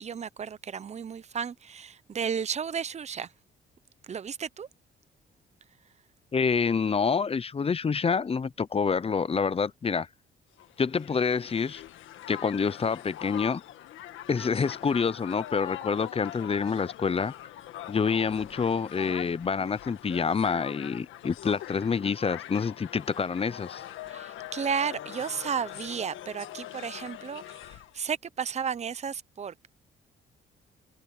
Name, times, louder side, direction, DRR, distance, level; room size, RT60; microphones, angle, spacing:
voice 1, 0.0-3.3 4.0-4.7 24.1-29.7, right 7 dB, 35° right, 0.8 m, -33 dB
voice 2, 6.3-10.1 10.8-11.8 12.3-13.6 14.3-17.3 17.9-23.8, left 5 dB, 30° left, 0.7 m, -27 dB
Crowd, 10.6-28.0, left 13 dB, 85° left, 1.6 m, -42 dB
cardioid pair, 90°, 20 cm